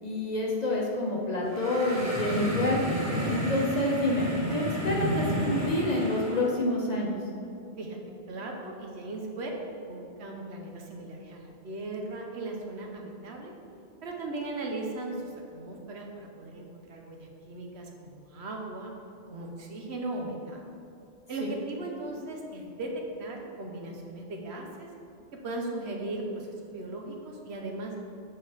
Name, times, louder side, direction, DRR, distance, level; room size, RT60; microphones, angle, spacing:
voice 1, 0.0-2.8 3.3-7.2 21.4-21.5, left 1 dB, 40° left, -2 dB, 0.9 m, -28 dB
sound 1, 1.4-6.5, equal, 15° right, 1.4 m, -31 dB
voice 2, 8.3-9.5 9.9-13.5 14.0-18.9 19.3-20.7 21.3-24.9 25.4-28.0, right 2 dB, 70° right, 1 dB, 1.1 m, -37 dB
7.3 x 5.4 x 3.4 m, 2.6 s
omnidirectional pair, 1.2 m